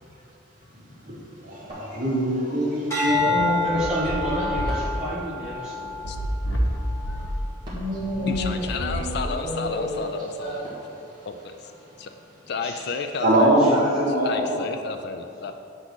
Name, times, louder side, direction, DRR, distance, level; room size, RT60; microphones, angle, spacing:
voice 1, 0.7-1.2 1.4-3.9 4.2-4.4 7.1-7.3 7.7-10.6 13.2-14.7, right 1 dB, 40° right, -6 dB, 1.9 m, -25 dB
sound 1, 1.7-2.6 4.7-5.1 7.6-8.1 10.6-11.1, equal, 20° right, 1.7 m, -42 dB
sound 2, 2.9-7.3 7.9-8.3, left 3 dB, 15° left, 1.6 m, -29 dB
sound 3, 3.2-9.7, equal, 75° left, 0.9 m, -30 dB
voice 2, 3.6-6.3 11.9-12.1 12.4-13.0 13.6-13.7 15.3-15.5, right 1 dB, 5° right, -9 dB, 1.8 m, -32 dB
voice 3, 8.1-10.6 11.3-11.7 12.0-12.1 12.5-13.5 14.1-15.5, left 5 dB, 55° left, 6 dB, 0.4 m, -32 dB
8.1 x 4.1 x 6.2 m, 2.6 s
head